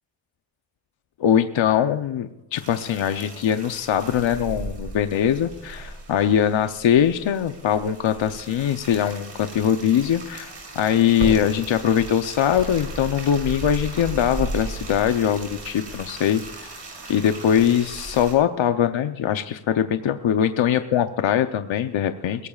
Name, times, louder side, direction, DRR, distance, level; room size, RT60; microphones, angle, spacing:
voice 1, 1.2-16.7 17.1-22.5, left 9 dB, 80° left, 8 dB, 0.8 m, -22 dB
sound 1, 2.6-18.3, right 2 dB, 65° right, 6.0 m, -36 dB
22.0 x 17.0 x 2.4 m, 0.92 s
wide cardioid pair, 110°, 46 cm